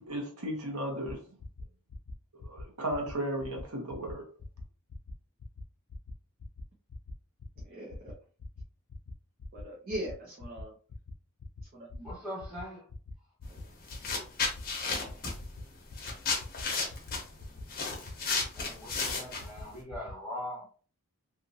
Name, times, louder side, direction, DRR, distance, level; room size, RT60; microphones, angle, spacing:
voice 1, 0.1-1.2 2.4-4.2, right 1 dB, 80° right, 1.1 m, -35 dB
sound 1, 1.1-1.2 1.4-1.6 1.9-2.1 2.4-2.6 2.9-3.1 3.4-3.6 3.9-4.1 4.4-4.6 4.9-5.1 5.4-5.6 5.9-6.1 6.4-6.6 6.9-7.1 7.4-7.6 7.9-8.1 8.4-8.6 8.9-9.1 9.4-9.6 9.9-10.1 10.4-10.6 10.9-11.1 11.4-11.6 11.9-12.1 12.4-12.6 12.9-13.1 13.4-13.6 13.9-14.1 14.4-14.6 14.9-15.1 15.4-15.6 15.9-16.1 16.4-16.6 16.9-17.1 17.4-17.6 17.9-18.1 18.4-18.6 18.9-19.1 19.4-19.6 19.9-20.1, left 2 dB, 75° left, 0.5 m, -43 dB
voice 2, 7.6-8.1 9.5-10.7 11.7-12.1 13.5-13.6, right 1 dB, 40° right, 0.6 m, -40 dB
voice 3, 12.0-12.9 18.5-20.6, left 1 dB, 5° right, 1.4 m, -41 dB
sound 2, 13.4-13.6 13.9-19.8, left 4 dB, 40° left, 0.8 m, -33 dB
2.7 x 2.5 x 2.7 m
head